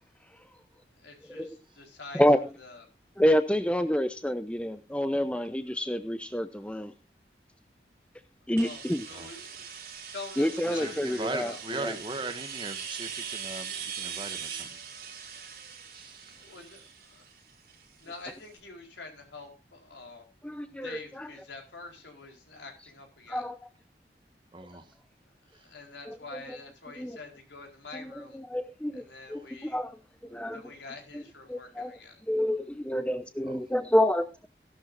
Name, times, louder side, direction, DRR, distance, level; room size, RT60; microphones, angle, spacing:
voice 1, 1.0-2.2 2.6-2.8 8.6-9.7 10.1-11.6 16.2-17.3 18.0-20.2 20.7-23.4 25.5-28.4 28.9-29.8 30.5-32.2, left 3 dB, 85° left, 4.4 m, -46 dB
voice 2, 2.1-2.5 3.2-6.9 8.5-9.0 10.4-11.9 20.4-21.3 23.3-23.7 26.1-26.6 27.0-27.2 27.9-30.6 31.1-31.2 31.5-32.0 32.3-34.5, equal, 5° left, 0.7 m, -28 dB
sound 1, 8.6-18.2, right 7 dB, 55° right, 5.4 m, -41 dB
voice 3, 10.7-14.8 15.9-16.4 24.5-24.9, right 2 dB, 25° right, 1.7 m, -38 dB
17.0 x 11.5 x 2.6 m
head